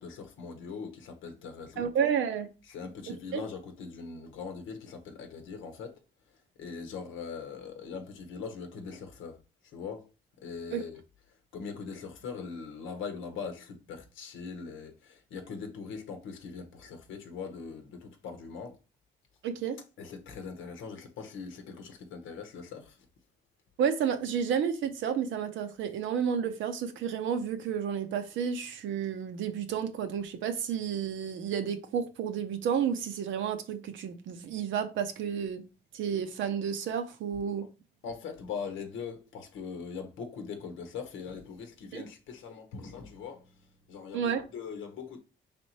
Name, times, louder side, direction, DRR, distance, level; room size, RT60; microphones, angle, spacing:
voice 1, 0.0-1.9 2.7-6.0 6.6-9.4 9.6-10.1 10.4-11.0 11.5-18.8 20.0-23.0 38.0-43.5 43.9-45.2, left 5 dB, 85° left, 0.8 m, -41 dB
voice 2, 1.8-2.5 3.1-3.4 10.7-10.8 19.4-19.8 23.8-35.6 35.9-37.7 41.9-42.0 44.1-44.4, right 7 dB, 75° right, 0.7 m, -31 dB
4.2 x 3.4 x 2.8 m
cardioid pair, 90°, 20 cm